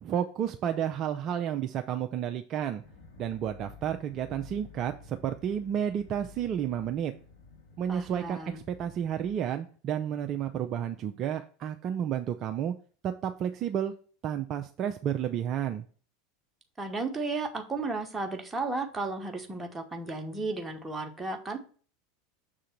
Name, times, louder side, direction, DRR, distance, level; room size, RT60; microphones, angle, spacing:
voice 1, 0.0-2.8 3.2-7.1 7.8-12.7 13.0-13.9 14.2-15.8, right 9 dB, 40° right, 7 dB, 0.4 m, -31 dB
sound 1, 2.8-9.4, left 5 dB, 60° left, 2.7 m, -52 dB
voice 2, 7.9-8.6 16.8-21.6, right 3 dB, 15° right, 4 dB, 1.1 m, -34 dB
6.7 x 3.7 x 4.5 m, 0.41 s
figure-of-eight pair, 80°, 0 cm